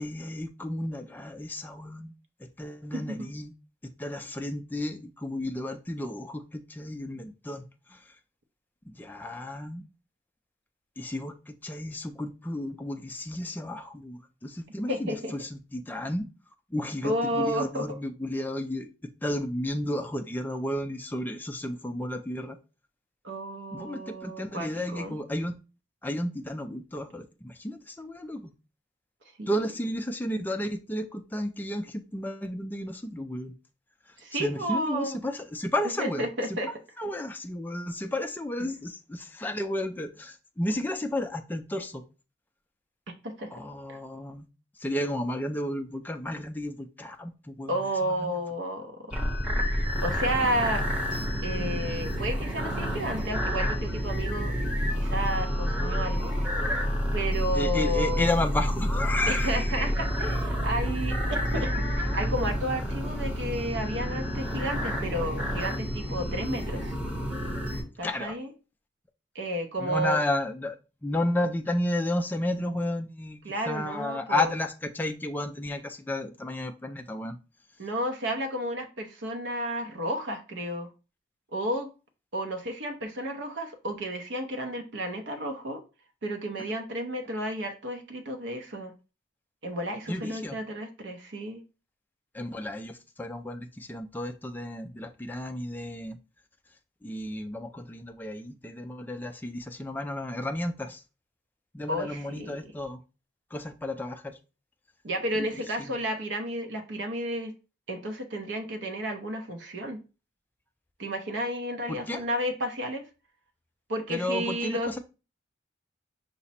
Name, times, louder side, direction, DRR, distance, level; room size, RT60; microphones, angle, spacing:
voice 1, 0.0-2.1 2.4-3.5 4.0-8.0 8.9-9.9 11.0-16.2 16.7-18.9 19.2-22.6 23.7-25.6 26.0-28.5 29.5-33.5 34.3-36.6 37.0-42.0 43.5-44.5 44.8-48.3 57.5-59.9 61.5-61.7 68.0-68.4 69.8-70.8 71.0-77.4 90.1-90.6 92.3-96.2 97.0-101.0 101.7-103.0 103.5-104.4 105.3-105.5 105.8-106.0 111.9-112.2 114.1-115.0, left 1 dB, 10° left, 5 dB, 0.3 m, -32 dB
voice 2, 2.9-3.3 14.9-15.3 17.0-18.0 23.2-25.2 29.4-29.5 34.2-35.2 36.0-36.7 43.2-43.5 43.9-44.0 47.7-49.2 50.0-50.8 51.4-54.5 54.9-56.3 57.1-58.3 59.3-67.0 68.0-68.5 69.3-70.2 73.4-74.5 77.8-80.9 81.5-81.9 82.3-85.8 86.2-88.9 89.6-91.6 101.9-102.7 105.0-107.5 107.9-110.0 111.0-113.1 113.9-114.9, equal, 65° right, 4 dB, 0.6 m, -32 dB
sound 1, 49.1-67.8, equal, 5° right, 0.8 m, -29 dB
5.7 x 2.0 x 4.1 m, 0.32 s
head